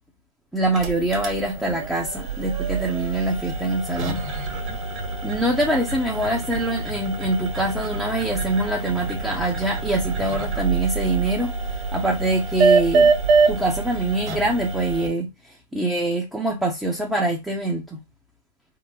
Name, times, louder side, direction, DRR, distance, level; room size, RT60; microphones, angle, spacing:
voice 1, 0.5-4.2 5.2-13.1 13.5-18.0, right 2 dB, 5° right, 0.7 m, -24 dB
sound 1, 0.6-15.1, right 4 dB, 35° right, 1.5 m, -25 dB
3.7 x 2.1 x 2.9 m
hypercardioid pair, 125°, 0 cm